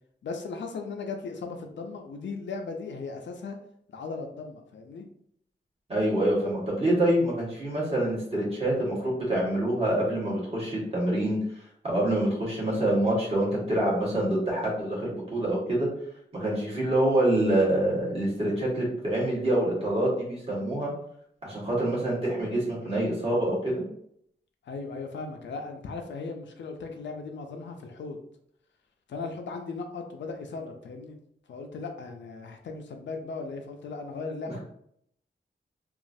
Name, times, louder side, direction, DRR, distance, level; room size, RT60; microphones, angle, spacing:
voice 1, 0.2-3.6 3.9-5.1 24.7-28.2 29.1-31.2 31.5-34.6, left 4 dB, 85° left, 4 dB, 0.5 m, -37 dB
voice 2, 5.9-11.4 11.8-15.9 16.3-20.9 21.4-23.8, right 1 dB, 30° right, -6 dB, 1.4 m, -26 dB
3.0 x 2.4 x 2.6 m, 0.69 s
wide cardioid pair, 135°, 18 cm